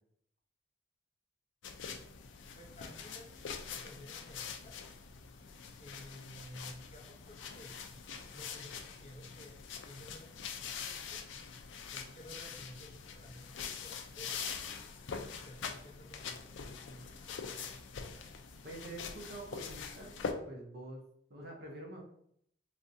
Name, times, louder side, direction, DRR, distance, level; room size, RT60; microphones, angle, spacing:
sound 1, 1.6-20.3, left 6 dB, 85° left, 0.4 m, -44 dB
voice 1, 2.5-4.9 5.8-7.8 8.3-11.2 11.9-14.6 15.1-17.8, left 1 dB, 35° left, -1 dB, 0.6 m, -54 dB
voice 2, 18.6-21.0 21.3-22.0, right 1 dB, 55° right, 0 dB, 0.7 m, -46 dB
3.4 x 2.6 x 2.6 m, 0.69 s
head